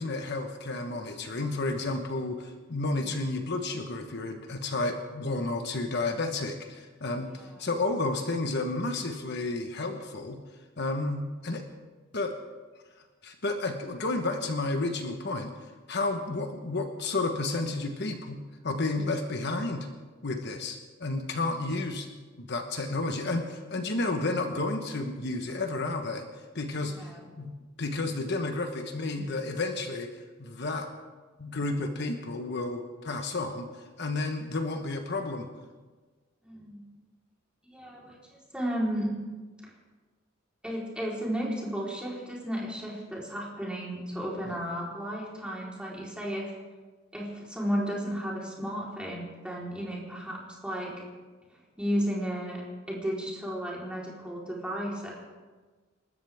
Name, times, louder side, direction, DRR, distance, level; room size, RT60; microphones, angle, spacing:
voice 1, 0.0-10.4 10.8-11.6 12.1-12.3 13.2-15.5 15.9-19.9 20.2-22.1 22.4-26.3 26.5-30.1 30.4-30.9 31.4-35.5, left 2 dB, 55° left, 5 dB, 1.2 m, -31 dB
voice 2, 26.8-27.3 36.4-36.8 37.7-38.1 38.5-39.1 40.6-46.5 47.1-51.0 51.8-52.6 52.9-55.2, equal, 5° right, -4 dB, 4.0 m, -33 dB
27.5 x 13.5 x 3.6 m, 1.4 s
head